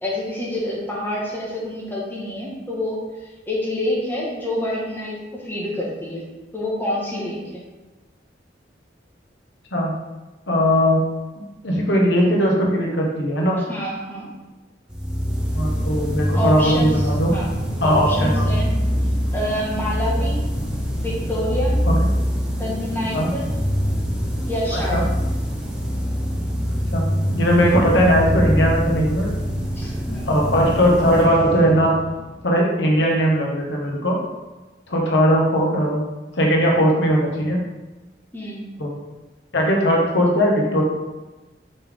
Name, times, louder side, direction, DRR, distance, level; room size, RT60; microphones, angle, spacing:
voice 1, 0.0-6.2 6.5-7.6 13.7-14.3 16.3-16.9 17.3-17.5 17.8-18.7 19.3-20.4 21.0-21.7 22.6-23.5 24.5-25.0 29.7-30.3 38.3-38.7, left 1 dB, 10° left, -5 dB, 1.6 m, -27 dB
voice 2, 10.5-11.0 11.6-13.6 15.5-17.4 17.8-18.5 21.9-22.0 23.1-23.3 24.9-25.0 26.9-27.1 27.3-29.3 30.2-32.0 32.4-34.2 34.9-36.0 36.3-37.6 38.8-39.0 39.5-40.8, equal, 85° left, -1 dB, 1.4 m, -19 dB
sound 1, 14.9-32.4, equal, 5° right, 1.1 m, -24 dB
5.6 x 5.4 x 3.7 m, 1.1 s
head